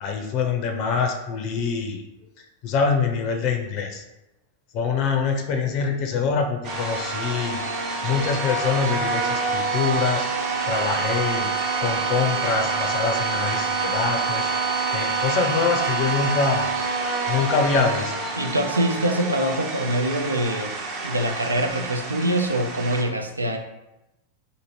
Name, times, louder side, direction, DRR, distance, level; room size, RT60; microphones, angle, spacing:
voice 1, 0.0-2.0 2.6-4.0 4.7-10.3 10.7-11.5 11.8-14.5 14.9-16.7 17.3-18.1, left 5 dB, 40° left, 4 dB, 0.5 m, -25 dB
sound 1, 6.6-23.0, right 4 dB, 40° right, 0.8 m, -27 dB
voice 2, 18.4-20.7 21.0-23.6, right 1 dB, 80° right, 4 dB, 0.4 m, -24 dB
2.8 x 2.7 x 4.3 m, 0.92 s
figure-of-eight pair, 90°, 0 cm